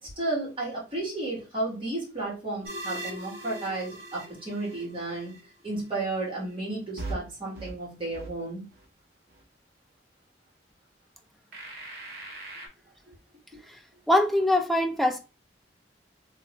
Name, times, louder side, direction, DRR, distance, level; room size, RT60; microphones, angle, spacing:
voice 1, 0.0-5.4 5.6-8.6 13.1-13.2, right 2 dB, 30° right, 1.7 m, -33 dB
sound 1, 2.6-5.5 7.0-7.1 7.6-7.7 8.1-8.3 8.7-8.8 11.5-12.7, right 2 dB, 60° right, 1.0 m, -40 dB
voice 2, 14.1-15.2, left 1 dB, ahead, 0.4 m, -23 dB
2.9 x 2.6 x 2.9 m
head